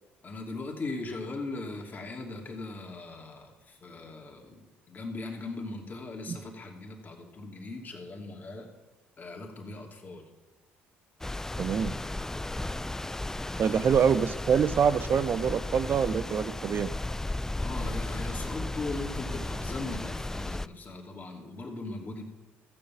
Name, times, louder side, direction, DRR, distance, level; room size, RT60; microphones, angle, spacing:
voice 1, 0.2-8.7 9.2-10.3 13.6-13.9 17.6-22.2, left 2 dB, 35° left, 1 dB, 2.7 m, -39 dB
sound 1, 11.2-20.7, left 2 dB, 10° left, 0.4 m, -34 dB
voice 2, 11.6-12.0 13.6-16.9, right 7 dB, 50° right, 16 dB, 0.7 m, -25 dB
14.5 x 7.1 x 7.2 m, 1.1 s
supercardioid pair, 70°, 5 cm